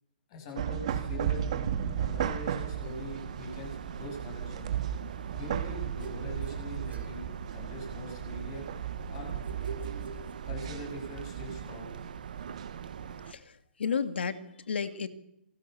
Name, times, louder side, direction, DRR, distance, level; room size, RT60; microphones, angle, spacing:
voice 1, 0.3-1.6 1.9-4.8 5.3-8.6 9.1-9.3 10.4-11.9, left 1 dB, 25° left, 2 dB, 7.8 m, -42 dB
sound 1, 0.6-13.2, right 9 dB, 35° right, 2.0 m, -35 dB
sound 2, 0.7-13.3, right 7 dB, 50° right, 1.4 m, -45 dB
sound 3, 6.0-7.9 9.4-11.0, right 4 dB, 85° right, 6.1 m, -46 dB
voice 2, 13.3-15.1, left 6 dB, 75° left, 10 dB, 2.5 m, -33 dB
28.0 x 19.5 x 7.1 m, 0.81 s
hypercardioid pair, 180°, 6 cm